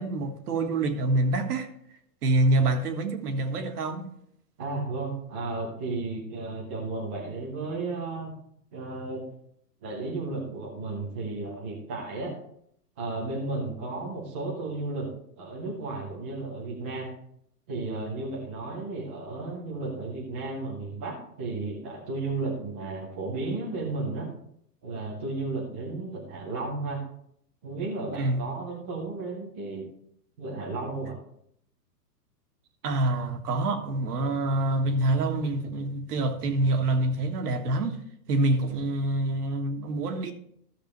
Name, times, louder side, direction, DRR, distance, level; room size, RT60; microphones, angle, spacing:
voice 1, 0.0-1.7 2.2-4.1 28.2-28.5 32.8-38.0 38.3-40.3, right 2 dB, 70° right, 1.6 m, -26 dB
voice 2, 4.6-8.3 8.7-9.2 9.8-12.3 13.0-15.1 15.4-17.1 17.7-24.3 24.8-27.0 27.6-29.8 30.4-31.2, right 3 dB, 10° right, 0.3 m, -33 dB
14.0 x 6.8 x 3.1 m
hypercardioid pair, 140°, 49 cm